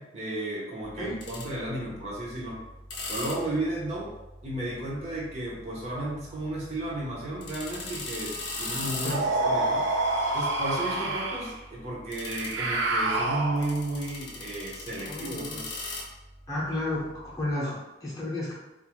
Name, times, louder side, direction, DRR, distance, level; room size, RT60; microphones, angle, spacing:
voice 1, 0.0-2.6 3.1-4.1 4.4-9.9 10.3-15.7 16.7-16.8 17.6-17.8, right 1 dB, 35° right, -5 dB, 0.6 m, -33 dB
sound 1, 0.8-17.5, left 2 dB, 70° left, 0.6 m, -41 dB
sound 2, 9.1-11.5 12.2-13.9, right 2 dB, 70° right, 0.4 m, -27 dB
voice 2, 15.0-15.6 16.5-18.5, left 1 dB, 20° left, -7 dB, 0.7 m, -32 dB
2.5 x 2.4 x 2.9 m, 0.97 s
head